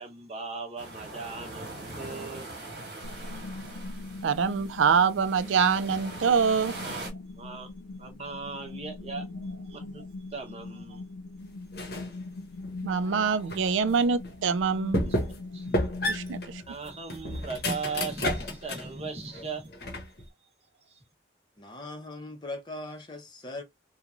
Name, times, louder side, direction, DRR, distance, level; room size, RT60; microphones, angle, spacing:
voice 1, 0.0-2.5 3.5-3.6 6.8-7.1 7.4-7.7 8.0-9.2 9.6-10.0 10.3-11.0 15.0-15.9 16.7-19.7 20.9-21.0, right 4 dB, 35° right, 0.9 m, -38 dB
sound 1, 0.8-7.1, right 2 dB, 60° right, 1.2 m, -42 dB
sound 2, 3.0-16.7, left 2 dB, 85° left, 0.4 m, -41 dB
voice 2, 4.2-6.7 12.8-15.0 16.1-16.6, right 6 dB, 90° right, 0.4 m, -25 dB
sound 3, 11.7-12.2 12.6-13.7 14.2-14.3 14.9-15.5 15.7-18.9 19.3-20.2, left 1 dB, 55° left, 0.8 m, -31 dB
voice 3, 21.6-23.6, left 2 dB, 25° left, 0.6 m, -39 dB
3.0 x 2.2 x 2.5 m
head